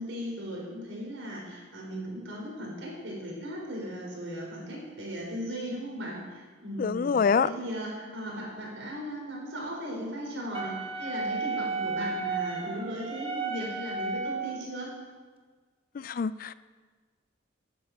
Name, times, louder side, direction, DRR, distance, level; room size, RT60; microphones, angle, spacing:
voice 1, 0.0-7.1 7.4-14.9, equal, 80° right, -3 dB, 4.5 m, -37 dB
voice 2, 6.8-7.5 16.0-16.5, left 6 dB, 45° left, 16 dB, 0.3 m, -25 dB
Wind instrument woodwind instrument, 10.5-14.7, right 4 dB, 30° right, 1.1 m, -33 dB
12.0 x 9.5 x 6.0 m, 1.4 s
head